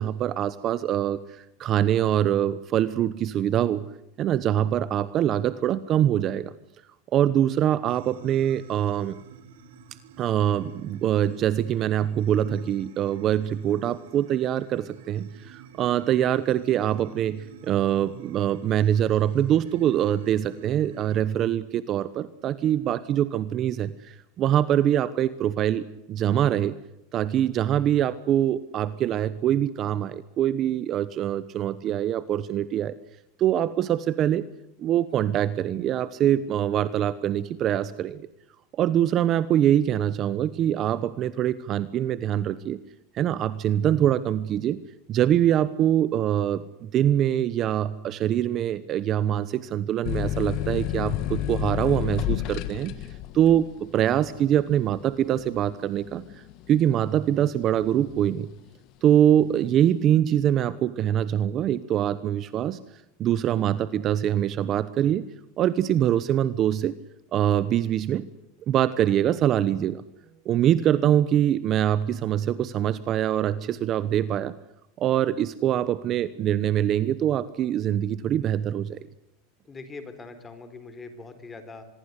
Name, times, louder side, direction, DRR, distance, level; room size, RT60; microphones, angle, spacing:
voice 1, 0.0-3.8 4.2-6.5 7.1-9.2 10.2-26.7 27.1-33.0 33.4-34.4 34.8-38.2 38.7-42.8 43.1-44.8 45.1-52.9 53.3-56.4 56.7-58.5 59.0-62.8 63.2-66.9 67.3-68.3 68.7-70.0 70.4-74.5 75.0-79.0, right 11 dB, 35° right, 16 dB, 1.0 m, -24 dB
sound 1, 7.9-21.2, right 9 dB, 85° right, 3.2 m, -47 dB
sound 2, 50.0-57.3 57.8-58.5, left 12 dB, 45° left, 1.6 m, -31 dB
voice 2, 79.7-81.8, left 3 dB, 15° left, 10 dB, 4.0 m, -42 dB
25.5 x 21.5 x 8.2 m, 0.84 s
supercardioid pair, 150°, 0 cm